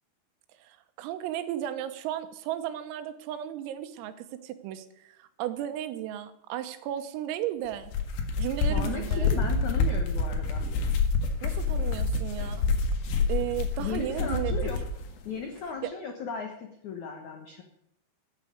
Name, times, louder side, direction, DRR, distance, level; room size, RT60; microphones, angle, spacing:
voice 1, 0.6-7.9 8.4-9.5 11.4-12.7 13.3-14.7 15.8-15.9, right 12 dB, 90° right, 10 dB, 3.8 m, -34 dB
sound 1, 7.7-14.9, left 4 dB, 65° left, 3.6 m, -27 dB
voice 2, 8.7-10.7 13.8-14.8 15.2-17.6, left 6 dB, 85° left, 3 dB, 1.6 m, -36 dB
14.5 x 8.4 x 9.2 m, 0.76 s
omnidirectional pair, 5.8 m